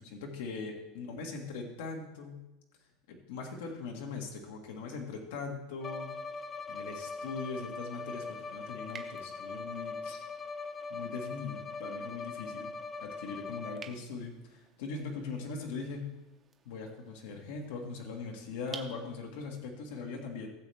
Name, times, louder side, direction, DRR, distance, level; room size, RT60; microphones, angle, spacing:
voice 1, 0.0-2.4 3.1-6.2 6.7-10.2 10.9-12.7 13.0-16.1 16.6-20.5, left 4 dB, 85° left, 0 dB, 1.7 m, -40 dB
Bowed string instrument, 5.8-14.1, left 4 dB, 15° left, 0.3 m, -41 dB
sound 1, 6.0-19.5, right 6 dB, 20° right, 0.7 m, -55 dB
17.0 x 7.6 x 3.5 m, 0.96 s
supercardioid pair, 165°, 0 cm